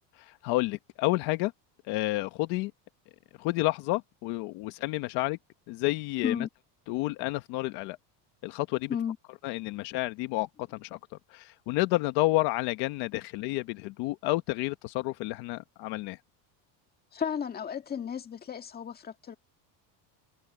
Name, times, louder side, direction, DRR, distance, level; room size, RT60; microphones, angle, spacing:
voice 1, 0.2-1.5 1.9-2.7 3.4-5.4 5.7-6.5 6.9-8.0 8.4-8.9 9.4-11.0 11.3-16.2, left 20 dB, 60° left, 1.2 m, -30 dB
voice 2, 17.1-19.4, left 8 dB, 20° left, 1.8 m, -33 dB
cardioid pair, 160°, 45 cm